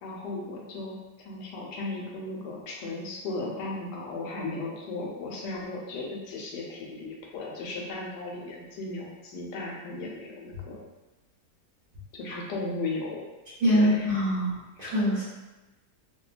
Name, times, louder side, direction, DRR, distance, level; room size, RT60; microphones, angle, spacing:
voice 1, 0.0-10.8 12.1-13.2 13.7-14.2, left 2 dB, 90° left, -2 dB, 1.2 m, -36 dB
voice 2, 13.6-15.2, equal, 45° right, -11 dB, 0.7 m, -24 dB
2.9 x 2.2 x 2.4 m, 1.1 s
omnidirectional pair, 1.8 m